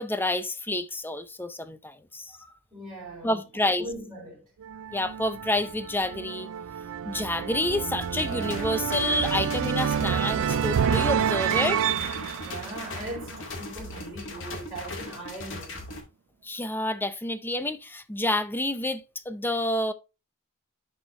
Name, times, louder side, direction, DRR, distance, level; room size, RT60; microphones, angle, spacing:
voice 1, 0.0-2.5 3.2-3.9 4.9-6.5 7.1-11.9 16.4-19.9, left 1 dB, 10° left, 0.6 m, -29 dB
voice 2, 2.7-3.4 3.8-4.4 12.4-15.8, right 1 dB, 20° right, 3.9 m, -39 dB
sound 1, 4.6-13.6, right 8 dB, 65° right, 0.4 m, -29 dB
sound 2, 8.0-16.0, left 2 dB, 60° left, 2.2 m, -39 dB
11.0 x 4.5 x 3.1 m
head